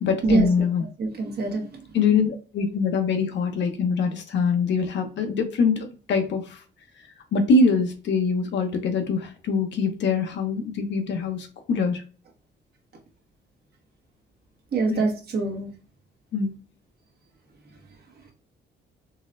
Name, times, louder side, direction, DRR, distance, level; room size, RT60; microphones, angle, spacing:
voice 1, 0.0-0.8 1.9-6.6 7.3-12.0 14.9-15.0 16.3-16.6, left 4 dB, 65° left, 6 dB, 0.7 m, -23 dB
voice 2, 1.0-1.7 14.7-15.7, right 3 dB, 55° right, 1 dB, 1.0 m, -24 dB
3.9 x 2.1 x 2.5 m, 0.37 s
cardioid pair, 90°, 20 cm